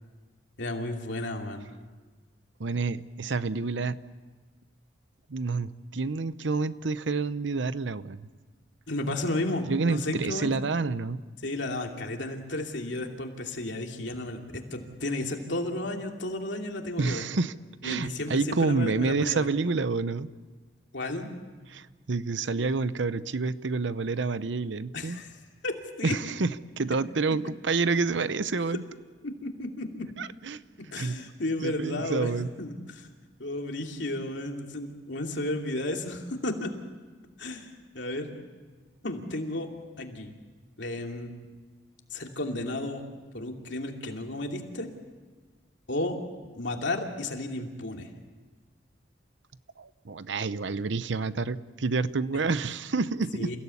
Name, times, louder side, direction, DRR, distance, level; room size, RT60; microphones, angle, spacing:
voice 1, 0.6-1.7 8.9-10.5 11.4-17.2 17.8-19.5 20.9-21.3 24.9-25.3 25.6-26.2 29.2-30.1 30.9-32.3 32.6-33.1 33.4-36.7 37.4-38.4 39.0-39.7 40.0-40.3 40.8-41.3 42.1-43.0 43.3-44.9 45.9-46.2 46.5-48.1 53.3-53.6, left 1 dB, 70° left, 2 dB, 2.7 m, -33 dB
voice 2, 2.6-4.0 5.3-8.3 9.7-11.2 17.0-17.5 17.8-20.3 21.7-25.2 26.0-28.8 30.2-30.6 31.0-31.2 31.6-32.5 49.8-53.5, right 4 dB, 75° right, 15 dB, 0.7 m, -28 dB
28.5 x 16.5 x 8.5 m, 1.4 s
head